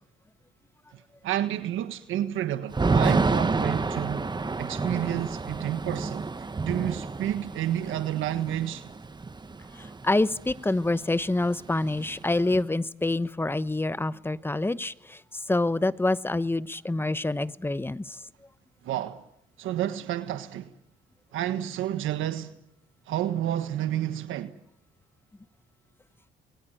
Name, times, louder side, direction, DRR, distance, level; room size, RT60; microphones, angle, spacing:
voice 1, 0.9-4.3 4.6-8.9 18.8-19.2 19.6-20.7 21.3-22.5 23.1-24.6, right 12 dB, 85° right, 1.4 m, -30 dB
Thunder / Rain, 2.7-10.6 10.9-11.0 11.3-12.6, right 3 dB, 20° right, 1.2 m, -29 dB
voice 2, 9.7-18.3, left 2 dB, 10° left, 1.0 m, -27 dB
28.5 x 21.5 x 9.1 m
cardioid pair, 90°, 20 cm